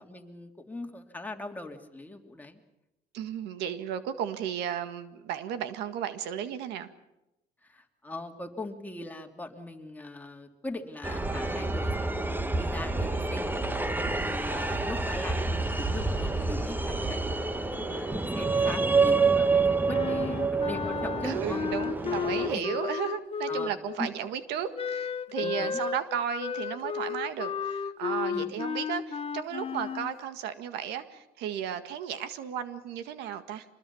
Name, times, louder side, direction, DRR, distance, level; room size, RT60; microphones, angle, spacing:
voice 1, 0.0-2.6 7.6-13.5 14.1-21.6 22.5-22.7 23.5-24.1 25.4-25.8 28.3-28.5, left 2 dB, 10° left, 3 dB, 2.9 m, -40 dB
voice 2, 3.1-6.9 21.2-33.7, right 9 dB, 90° right, 11 dB, 1.8 m, -34 dB
sound 1, 11.0-22.6, right 3 dB, 10° right, 1.4 m, -28 dB
Wind instrument woodwind instrument, 19.9-24.0 24.7-30.2, left 6 dB, 35° left, 0.9 m, -33 dB
26.0 x 21.0 x 7.1 m, 0.91 s
cardioid pair, 110°, 17 cm